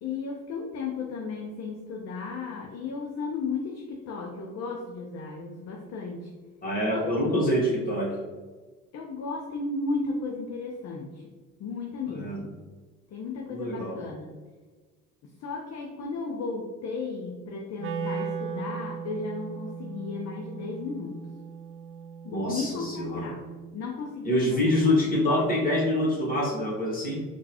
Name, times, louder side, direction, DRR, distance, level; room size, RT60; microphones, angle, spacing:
voice 1, 0.0-6.3 6.9-7.5 8.9-11.3 11.6-12.5 13.1-14.4 15.2-21.2 22.2-23.4 23.7-24.9, left 4 dB, 40° left, 1 dB, 0.5 m, -34 dB
voice 2, 6.6-8.2 12.1-12.4 13.5-13.9 22.3-23.3 24.2-27.2, left 1 dB, 20° left, -4 dB, 1.4 m, -26 dB
Wind instrument woodwind instrument, 17.8-23.9, right 6 dB, 35° right, 0.4 m, -38 dB
3.6 x 2.4 x 2.9 m, 1.4 s
hypercardioid pair, 55°, 40 cm